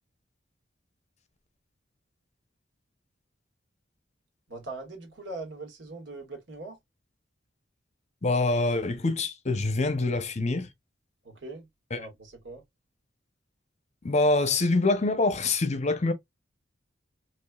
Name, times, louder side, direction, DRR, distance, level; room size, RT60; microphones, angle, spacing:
voice 1, 4.5-6.8 11.2-11.7 12.0-12.6, right 2 dB, 65° right, 1.8 m, -41 dB
voice 2, 8.2-10.7 11.9-12.0 14.0-16.1, left 2 dB, 35° left, 0.7 m, -25 dB
4.8 x 3.1 x 2.3 m
head